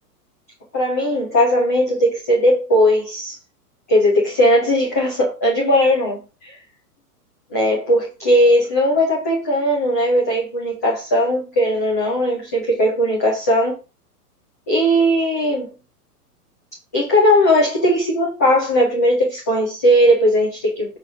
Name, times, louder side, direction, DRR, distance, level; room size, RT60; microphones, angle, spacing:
voice 1, 0.7-3.4 3.9-6.6 7.5-13.8 14.7-15.7 16.9-21.0, equal, 10° left, 0.3 m, -18 dB
9.2 x 3.2 x 5.3 m
hypercardioid pair, 140°, 47 cm